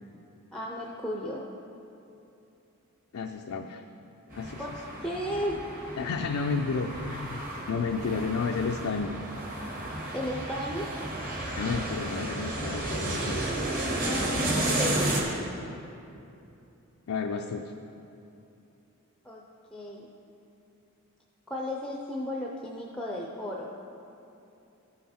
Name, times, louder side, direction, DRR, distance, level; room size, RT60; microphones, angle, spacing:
voice 1, 0.5-1.5 4.6-4.7 5.0-5.7 10.1-11.0 14.0-15.5 19.2-19.4 19.7-20.1 21.5-23.8, left 1 dB, 5° left, -2 dB, 0.5 m, -34 dB
voice 2, 3.1-3.8 4.3-4.6 6.0-9.1 11.6-13.4 17.1-17.7, left 4 dB, 75° left, 3 dB, 0.4 m, -31 dB
sound 1, 4.3-15.2, right 1 dB, 40° right, 1.3 m, -32 dB
14.5 x 5.7 x 4.3 m, 2.8 s
head